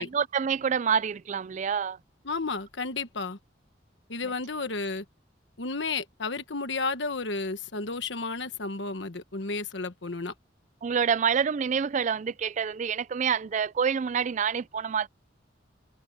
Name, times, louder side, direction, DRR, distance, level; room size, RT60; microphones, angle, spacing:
voice 1, 0.0-2.0 10.8-15.1, right 7 dB, 40° right, 0.3 m, -27 dB
voice 2, 2.2-3.4 4.1-5.0 5.6-10.3, left 3 dB, 70° left, 1.4 m, -32 dB
head